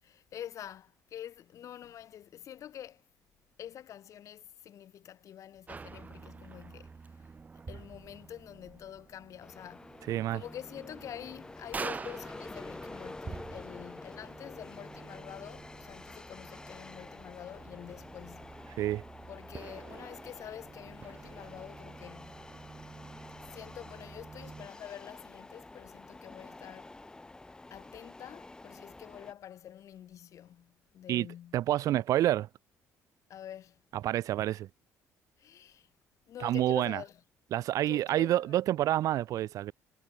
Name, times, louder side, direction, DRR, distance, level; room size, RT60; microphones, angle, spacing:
voice 1, 0.0-3.0 3.6-7.3 7.7-10.1 10.3-18.8 19.3-22.5 23.5-27.0 27.7-31.6 33.3-33.8 35.4-35.9 36.3-37.2 37.8-38.6, left 10 dB, 55° left, 3.7 m, -47 dB
sound 1, 5.7-24.7, right 4 dB, 25° right, 2.2 m, -47 dB
sound 2, 9.4-29.3, left 2 dB, 10° left, 0.7 m, -49 dB
voice 2, 10.1-10.4 18.8-19.0 31.1-31.3 31.5-32.5 34.0-34.7 36.4-37.0 37.5-39.7, right 13 dB, 65° right, 0.4 m, -28 dB
cardioid pair, 115°, 6 cm